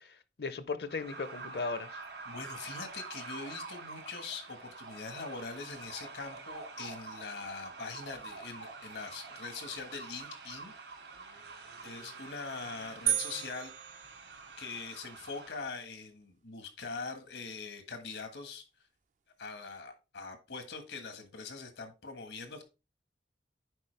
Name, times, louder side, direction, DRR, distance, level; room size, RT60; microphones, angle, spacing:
voice 1, 0.0-2.0, left 4 dB, 60° left, 0.7 m, -37 dB
sound 1, 0.9-15.7, right 4 dB, 85° right, 2.9 m, -47 dB
voice 2, 2.2-10.7 11.8-13.7 14.6-18.7 19.4-22.6, left 4 dB, 85° left, 1.5 m, -42 dB
sound 2, 13.1-14.8, right 11 dB, 45° right, 0.4 m, -34 dB
9.8 x 4.3 x 3.3 m
head